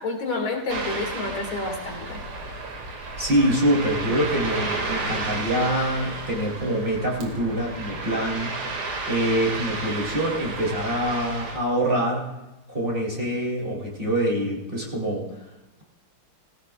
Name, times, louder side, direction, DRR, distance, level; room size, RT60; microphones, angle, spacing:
voice 1, 0.0-2.2, left 3 dB, 70° left, 1 dB, 2.9 m, -29 dB
Ocean, 0.7-11.6, right 3 dB, 90° right, 3.0 m, -32 dB
voice 2, 3.2-8.5 9.1-12.3 12.7-15.3, right 1 dB, 25° right, -3 dB, 3.0 m, -25 dB
18.5 x 16.5 x 2.4 m, 1.0 s
omnidirectional pair, 2.3 m